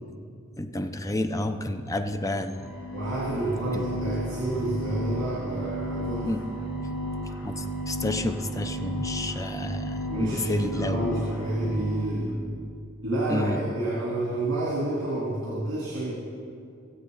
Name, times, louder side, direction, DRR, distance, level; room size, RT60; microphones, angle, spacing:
voice 1, 0.6-2.7 3.7-3.8 6.2-6.4 7.4-11.3 13.3-13.6, left 1 dB, 15° left, 7 dB, 0.6 m, -30 dB
sound 1, 2.6-12.3, right 1 dB, 65° left, 1.9 m, -34 dB
voice 2, 2.9-6.3 10.1-12.3 13.0-16.1, right 1 dB, 65° right, -6 dB, 3.1 m, -29 dB
22.0 x 7.6 x 4.0 m, 2.4 s
head